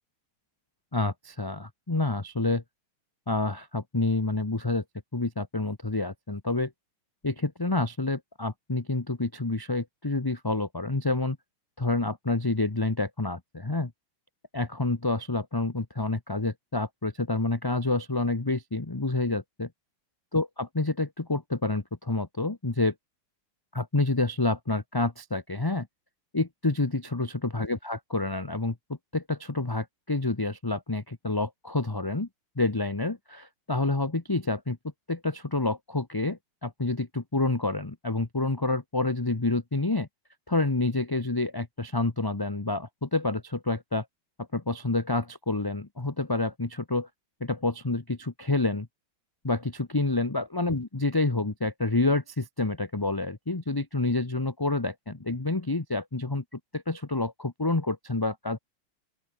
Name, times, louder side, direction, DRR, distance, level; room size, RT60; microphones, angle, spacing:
voice 1, 0.9-2.6 3.3-4.8 5.1-6.7 7.2-11.4 11.8-13.9 14.5-19.7 20.3-22.9 23.7-25.9 26.3-28.7 29.1-32.3 32.6-34.8 35.1-40.1 40.5-44.1 44.4-47.1 47.4-48.9 49.4-58.6, left 2 dB, 15° left, 0.8 m, -28 dB
open air
omnidirectional pair, 2.3 m